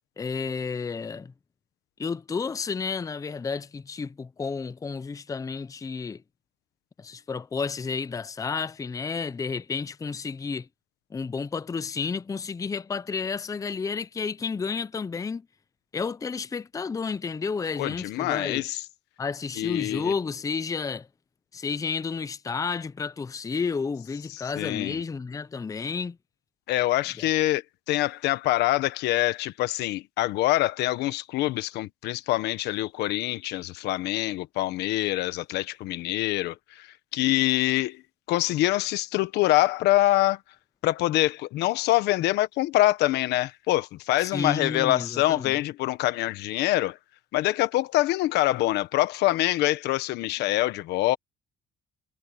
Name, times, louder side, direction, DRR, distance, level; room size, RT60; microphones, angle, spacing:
voice 1, 0.2-1.3 2.0-6.2 7.0-10.7 11.1-15.5 15.9-18.6 19.2-21.1 21.5-26.2 27.2-27.3 44.2-45.6, left 5 dB, 20° left, 0.6 m, -31 dB
voice 2, 17.8-18.8 19.6-20.1 24.3-25.0 26.7-27.6 27.9-36.9 37.1-38.0 38.3-40.4 40.8-47.0 47.3-51.2, left 16 dB, 85° left, 1.3 m, -25 dB
cardioid pair, 110°, 17 cm